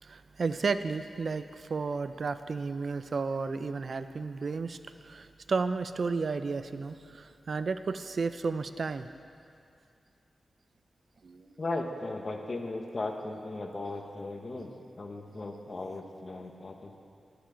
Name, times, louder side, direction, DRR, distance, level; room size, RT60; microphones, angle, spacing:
voice 1, 0.0-4.8 5.0-9.1 11.2-11.4, right 4 dB, 55° right, 11 dB, 0.3 m, -32 dB
voice 2, 11.6-14.7 15.0-17.0, left 2 dB, 40° left, 4 dB, 0.9 m, -37 dB
10.0 x 10.0 x 5.0 m, 2.4 s
wide cardioid pair, 110°, 0 cm